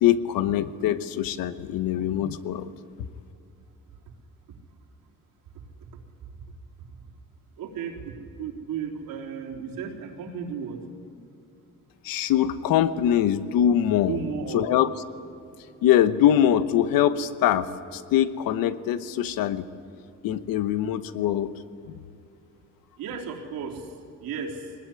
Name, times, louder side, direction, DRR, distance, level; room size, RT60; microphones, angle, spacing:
voice 1, 0.0-2.7 12.0-14.2 14.5-14.9 15.8-19.7 20.2-21.5, left 11 dB, 90° left, 12 dB, 1.1 m, -23 dB
voice 2, 7.6-10.8 14.1-14.7 23.0-24.7, right 6 dB, 80° right, -1 dB, 3.9 m, -34 dB
22.5 x 20.0 x 9.9 m, 2.5 s
cardioid pair, 130°, 34 cm